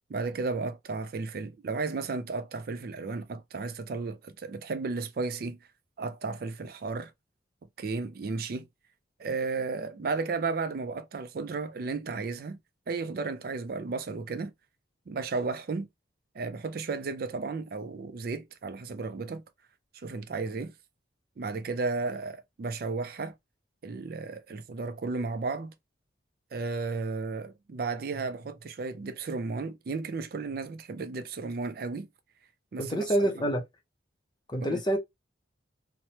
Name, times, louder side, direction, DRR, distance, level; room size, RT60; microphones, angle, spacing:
voice 1, 0.1-5.6 6.0-7.1 7.8-8.7 9.2-12.6 12.9-14.5 15.1-15.9 16.3-19.4 19.9-20.7 21.4-23.3 23.8-25.7 26.5-32.1 32.7-33.1 34.6-34.8, right 4 dB, 50° right, 0.4 m, -34 dB
voice 2, 32.8-33.6 34.5-35.0, right 1 dB, 25° left, 0.5 m, -27 dB
3.0 x 2.1 x 2.7 m
head